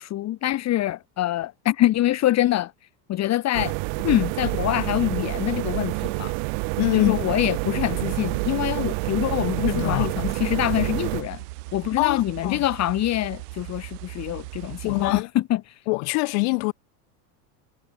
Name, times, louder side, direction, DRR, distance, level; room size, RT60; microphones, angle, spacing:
voice 1, 0.0-2.7 3.1-3.7 4.0-6.3 6.9-11.4 11.7-15.6, left 14 dB, 35° left, 1.1 m, -25 dB
sound 1, 3.5-11.2, right 38 dB, 60° right, 1.3 m, -28 dB
voice 2, 6.8-7.2 9.7-10.1 12.0-12.6 14.8-15.3 15.9-16.7, left 36 dB, 65° left, 1.2 m, -24 dB
sound 2, 7.9-15.2, right 22 dB, 75° right, 1.3 m, -39 dB
supercardioid pair, 125°, 47 cm